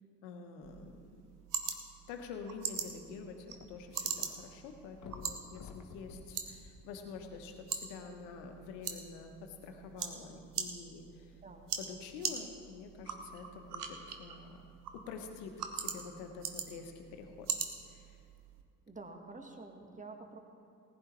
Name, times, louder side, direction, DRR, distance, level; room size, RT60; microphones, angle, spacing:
voice 1, 0.2-1.1 2.1-11.4 11.8-14.6 14.9-17.5 17.9-18.2, left 5 dB, 65° left, 5 dB, 1.4 m, -47 dB
sound 1, 0.6-18.6, right 7 dB, 80° right, 1.0 m, -43 dB
sound 2, 2.8-4.2 4.5-4.6 5.0-7.5 8.2-8.3, left 5 dB, 40° left, 1.2 m, -52 dB
voice 2, 18.9-20.4, right 3 dB, 15° right, 4 dB, 1.6 m, -48 dB
19.0 x 11.0 x 3.3 m, 2.5 s
figure-of-eight pair, 45°, 46 cm